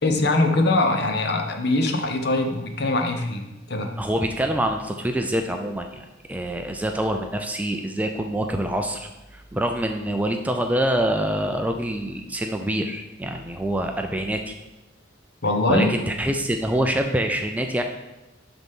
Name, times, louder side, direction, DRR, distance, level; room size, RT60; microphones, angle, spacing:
voice 1, 0.0-3.4 3.7-3.9 15.4-15.9, left 2 dB, 55° left, 4 dB, 0.9 m, -22 dB
voice 2, 4.0-14.6 15.7-17.8, right 1 dB, 10° right, 4 dB, 0.4 m, -26 dB
12.0 x 3.9 x 3.7 m, 0.99 s
head